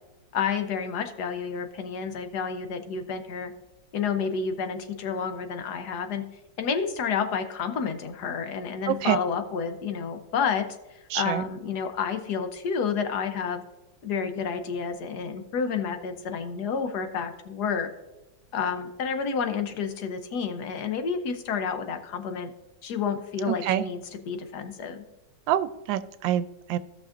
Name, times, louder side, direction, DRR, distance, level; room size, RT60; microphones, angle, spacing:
voice 1, 0.3-3.5 3.9-6.2 6.6-10.6 10.9-13.6 14.0-17.9 18.5-22.5 22.8-25.0, left 6 dB, 65° left, 8 dB, 1.2 m, -30 dB
voice 2, 8.9-9.2 11.1-11.4 23.5-23.9 25.5-26.8, right 12 dB, 90° right, 13 dB, 1.3 m, -26 dB
16.5 x 6.1 x 2.5 m, 1.0 s
omnidirectional pair, 2.0 m